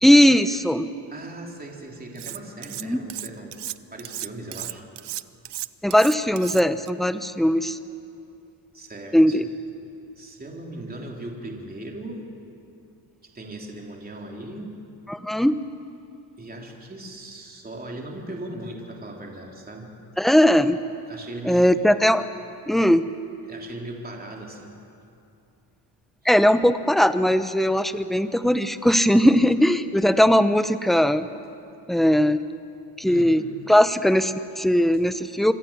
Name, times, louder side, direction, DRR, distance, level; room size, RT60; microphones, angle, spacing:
voice 1, 0.0-0.9 2.8-3.0 5.8-7.8 9.1-9.4 15.1-15.6 20.2-20.8 21.4-22.2 22.7-23.0 26.2-31.3 31.9-32.4 33.0-33.4 33.7-35.5, equal, ahead, 11 dB, 0.9 m, -19 dB
voice 2, 1.1-3.6 3.9-4.9 8.7-9.4 10.2-12.3 13.3-14.8 16.4-19.9 21.1-21.7 23.5-24.7 26.2-26.3 33.0-33.4 34.9-35.0, right 1 dB, 20° right, 0 dB, 3.5 m, -38 dB
Cutlery silverware, 2.2-2.8 3.1-6.9, right 14 dB, 65° right, 0.7 m, -34 dB
27.0 x 24.0 x 7.3 m, 2.7 s
cardioid pair, 120°, 44 cm